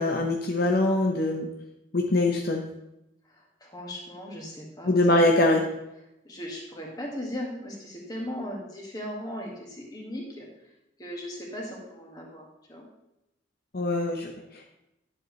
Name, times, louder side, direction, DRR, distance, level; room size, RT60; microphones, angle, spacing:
voice 1, 0.0-1.5 1.9-2.7 4.8-5.7 13.7-14.6, left 2 dB, 55° left, 1 dB, 0.7 m, -23 dB
voice 2, 3.6-4.9 5.3-5.6 6.3-10.5 11.0-12.9, equal, 20° left, -2 dB, 1.9 m, -38 dB
10.5 x 7.6 x 3.2 m, 0.89 s
head